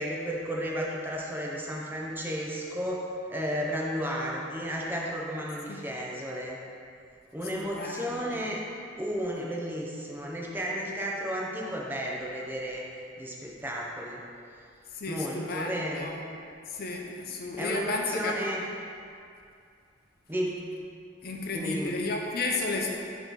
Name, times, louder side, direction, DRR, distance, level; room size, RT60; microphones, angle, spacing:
voice 1, 0.0-6.6 7.3-8.6 9.0-12.8 13.2-14.2 15.1-16.1 17.6-18.6 20.3-20.6 21.5-22.0, equal, 10° right, -3 dB, 0.6 m, -33 dB
voice 2, 7.6-8.5 14.9-16.1 16.7-18.4 21.2-22.9, left 3 dB, 55° left, 0 dB, 0.6 m, -33 dB
6.3 x 3.0 x 5.2 m, 2.4 s
head